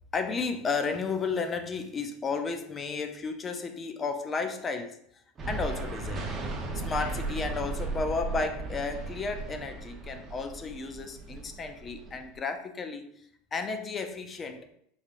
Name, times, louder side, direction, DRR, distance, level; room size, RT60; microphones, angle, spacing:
voice 1, 0.1-5.0 5.5-6.4 6.7-13.1 13.5-14.8, left 4 dB, 25° left, 7 dB, 0.4 m, -33 dB
sound 1, 5.4-12.4, right 3 dB, 30° right, 0.9 m, -36 dB
4.8 x 2.9 x 2.5 m, 0.69 s
supercardioid pair, 115°, 0 cm